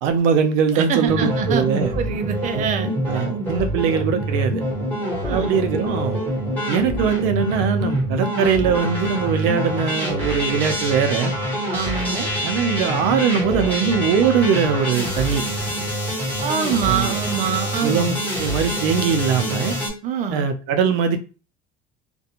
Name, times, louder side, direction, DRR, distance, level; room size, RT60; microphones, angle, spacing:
voice 1, 0.0-1.9 2.5-2.7 3.1-4.6 5.3-6.3 6.7-11.3 12.4-15.4 16.9-17.2 17.8-19.8 20.3-21.2, right 6 dB, 90° right, 0.6 m, -21 dB
voice 2, 0.7-3.3 5.2-5.5 11.7-12.3 16.4-18.2 20.0-20.5, right 7 dB, 40° right, 0.5 m, -25 dB
sound 1, 1.1-19.9, equal, 10° left, 1.2 m, -25 dB
2.5 x 2.2 x 2.8 m
cardioid pair, 145°, 20 cm